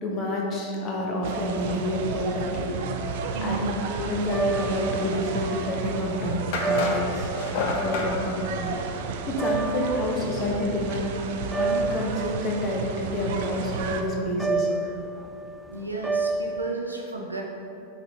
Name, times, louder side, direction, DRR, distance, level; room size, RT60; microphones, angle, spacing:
voice 1, 0.0-2.7 3.4-3.6 3.9-7.3 7.5-8.8 9.3-11.2 11.5-14.7, left 1 dB, 30° left, -2 dB, 1.3 m, -28 dB
sound 1, 1.2-14.0, right 5 dB, 50° right, 0.6 m, -33 dB
sound 2, 1.3-11.1 11.4-16.7, right 4 dB, 10° right, 0.3 m, -31 dB
voice 2, 3.3-3.9 15.7-17.4, right 2 dB, 85° right, -1 dB, 0.7 m, -32 dB
sound 3, 6.5-8.1, left 3 dB, 50° left, 0.9 m, -29 dB
9.4 x 4.8 x 3.4 m, 2.7 s
figure-of-eight pair, 90°, 0 cm